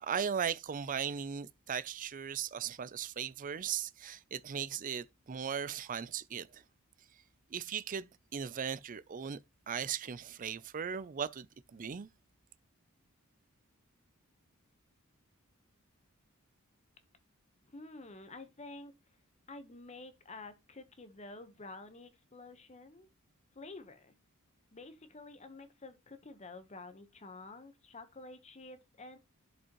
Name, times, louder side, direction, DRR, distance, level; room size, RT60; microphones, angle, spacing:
voice 1, 0.0-6.6 7.5-9.4 9.7-11.5 11.7-12.1, right 7 dB, 40° right, 0.4 m, -37 dB
voice 2, 17.7-19.0 19.5-23.1 23.5-24.1 24.7-29.2, left 2 dB, 30° left, 1.0 m, -50 dB
11.0 x 5.3 x 3.0 m
head